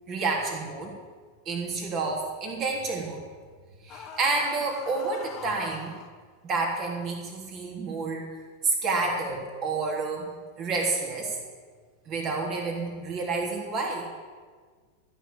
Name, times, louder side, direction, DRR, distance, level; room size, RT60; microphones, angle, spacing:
voice 1, 0.1-0.9 1.4-3.2 3.8-6.0 6.4-8.3 8.6-10.3 10.6-11.4 12.1-14.1, right 3 dB, 35° right, 0 dB, 3.3 m, -29 dB
sound 1, 3.9-6.1, left 6 dB, 35° left, 1.4 m, -43 dB
14.0 x 6.6 x 8.9 m, 1.5 s
figure-of-eight pair, 90°, 0 cm